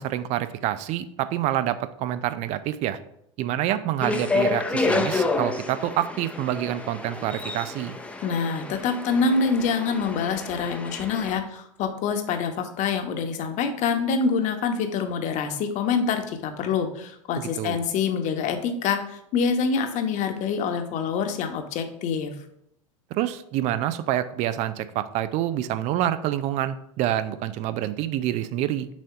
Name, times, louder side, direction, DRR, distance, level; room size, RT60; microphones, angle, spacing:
voice 1, 0.0-3.0 3.4-8.0 17.4-17.8 23.1-28.9, right 12 dB, 40° right, 13 dB, 0.4 m, -27 dB
sound 1, 4.0-11.4, left 3 dB, 5° left, 0.7 m, -29 dB
voice 2, 8.2-22.3, left 5 dB, 45° left, 6 dB, 1.0 m, -26 dB
7.3 x 2.7 x 5.6 m, 0.75 s
figure-of-eight pair, 80°, 17 cm